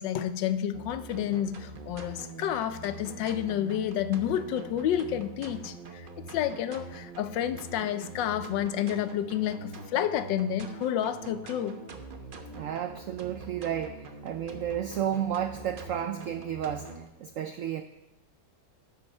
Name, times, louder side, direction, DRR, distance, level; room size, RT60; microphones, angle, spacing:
voice 1, 0.0-11.8, left 10 dB, 85° left, 1.3 m, -30 dB
sound 1, 0.7-17.1, right 3 dB, 45° right, 0.7 m, -44 dB
voice 2, 12.5-17.8, right 10 dB, 80° right, 0.7 m, -32 dB
13.0 x 5.6 x 5.4 m
omnidirectional pair, 1.9 m